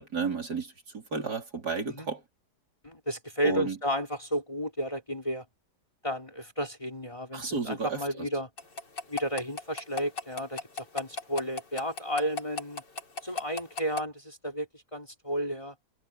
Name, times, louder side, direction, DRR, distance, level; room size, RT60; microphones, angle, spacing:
voice 1, 0.0-2.2 3.4-3.8 7.3-8.3, right 4 dB, 65° right, 4.8 m, -32 dB
voice 2, 2.8-5.4 6.0-8.5 9.1-12.8 13.2-15.7, equal, 20° left, 3.4 m, -33 dB
sound 1, 8.6-14.0, left 5 dB, 90° left, 4.0 m, -35 dB
omnidirectional pair, 1.8 m